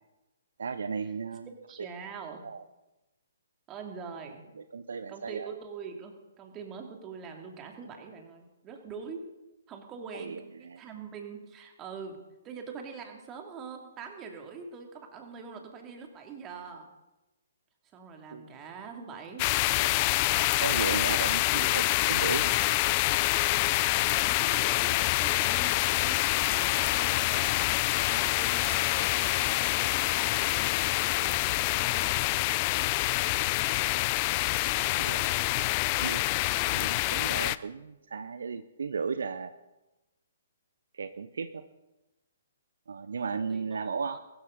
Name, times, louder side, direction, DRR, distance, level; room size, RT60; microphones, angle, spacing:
voice 1, 0.6-1.5 2.4-2.6 4.7-5.5 10.1-10.4 10.7-10.8 18.3-18.4 20.6-22.5 34.9-35.2 36.0-36.2 36.7-39.5 40.9-41.6 42.9-44.2, right 5 dB, 60° right, 12 dB, 0.7 m, -35 dB
voice 2, 1.7-2.4 3.7-4.5 5.1-9.3 9.7-12.2 12.4-16.9 17.8-20.0 23.9-27.6 28.1-32.9 43.5-44.2, right 5 dB, 20° right, 3 dB, 2.6 m, -44 dB
sound 1, 19.4-37.6, left 19 dB, 30° left, 0.4 m, -26 dB
22.0 x 13.0 x 4.0 m, 1.0 s
figure-of-eight pair, 125°, 0 cm